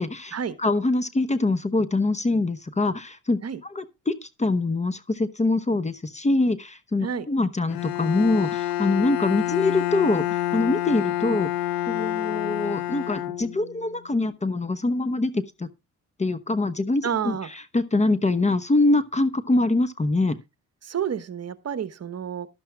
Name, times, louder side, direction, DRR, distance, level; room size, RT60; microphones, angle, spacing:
voice 1, 0.0-11.5 11.9-15.7 16.2-17.3 17.7-20.4, left 2 dB, 20° left, 0.9 m, -24 dB
Bowed string instrument, 7.7-13.9, left 13 dB, 75° left, 0.8 m, -28 dB
voice 2, 17.0-17.5 20.8-22.5, right 8 dB, 45° right, 1.1 m, -29 dB
14.5 x 11.5 x 2.3 m
supercardioid pair, 65°, 35 cm